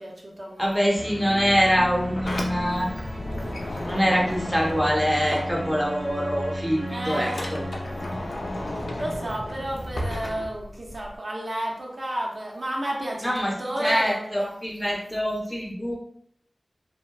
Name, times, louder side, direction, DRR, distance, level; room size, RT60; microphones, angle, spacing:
voice 1, 0.0-0.8 2.7-3.1 3.4-3.6 6.9-7.5 8.7-14.5 14.8-15.1, right 1 dB, 55° right, -2 dB, 0.6 m, -32 dB
voice 2, 0.6-2.9 3.8-7.6 13.2-13.5 13.8-16.0, equal, ahead, -2 dB, 0.6 m, -24 dB
sound 1, 0.9-9.8, equal, 85° right, 1.1 m, -35 dB
Sliding door, 1.8-6.1 6.4-11.1, left 1 dB, 80° left, 0.4 m, -34 dB
2.8 x 2.1 x 2.3 m, 0.66 s
wide cardioid pair, 50°, 0 cm